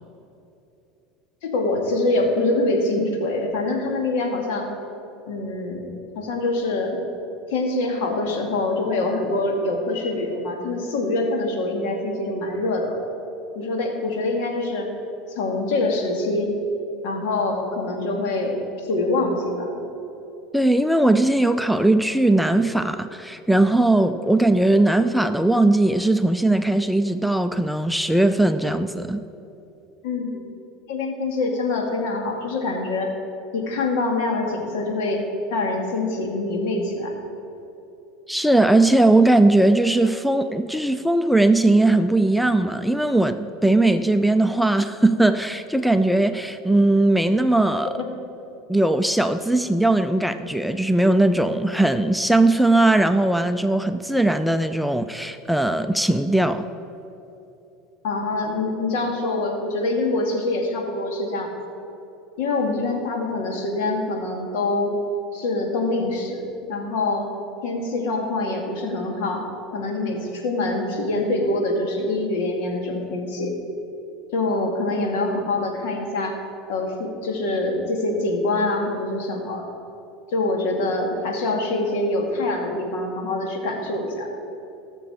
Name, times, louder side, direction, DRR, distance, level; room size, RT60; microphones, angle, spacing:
voice 1, 1.4-4.7 5.3-7.0 7.5-13.0 13.5-14.9 15.3-16.5 17.0-18.6 18.9-19.8 30.0-30.4 30.9-33.1 33.5-35.2 35.5-37.1 48.0-48.1 58.0-61.5 62.4-64.9 65.3-66.4 66.7-67.3 67.6-69.4 69.7-73.5 74.3-76.4 76.7-79.6 80.3-84.3, left 2 dB, 75° left, 2 dB, 2.1 m, -25 dB
voice 2, 20.5-29.2 38.3-48.0 48.7-56.7, right 2 dB, ahead, 9 dB, 0.4 m, -19 dB
18.0 x 6.9 x 4.9 m, 2.9 s
supercardioid pair, 105°, 0 cm